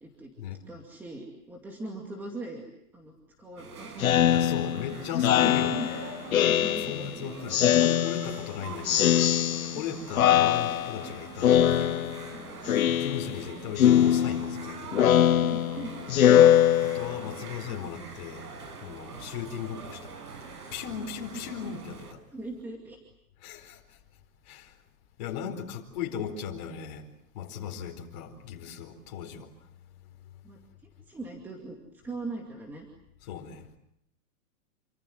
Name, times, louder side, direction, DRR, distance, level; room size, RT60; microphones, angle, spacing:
voice 1, 0.7-2.6 2.9-4.7 5.4-5.9 6.5-7.3 9.7-10.0 12.3-12.9 15.4-16.0 22.3-23.0 30.4-31.8 32.0-32.9, right 2 dB, 5° right, 2.3 m, -40 dB
sound 1, 3.6-22.1, right 4 dB, 75° right, 7.3 m, -43 dB
Speech synthesizer, 4.0-7.1 7.5-8.5 8.9-9.9 10.2-11.1 11.4-12.3 12.7-13.5 13.8-17.3, left 11 dB, 60° left, 1.2 m, -22 dB
voice 2, 4.1-5.8 6.8-9.3 9.7-12.2 13.0-14.9 16.8-18.5 18.8-20.2 20.7-22.2 23.4-24.0 24.4-24.8 25.2-27.1 27.3-29.5 33.2-33.7, left 8 dB, 30° left, 4.5 m, -37 dB
28.5 x 25.5 x 7.8 m
hypercardioid pair, 175°, 46 cm